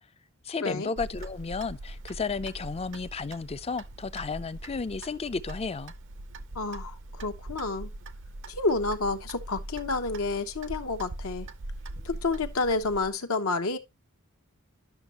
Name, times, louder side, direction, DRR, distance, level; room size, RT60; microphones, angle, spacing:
voice 1, 0.5-5.9, left 4 dB, 30° left, 0.5 m, -33 dB
Clock, 1.0-13.1, right 2 dB, 60° right, 0.7 m, -42 dB
voice 2, 6.5-7.9 8.5-11.5 12.0-13.8, left 3 dB, 70° left, 0.9 m, -29 dB
10.5 x 6.2 x 2.9 m
head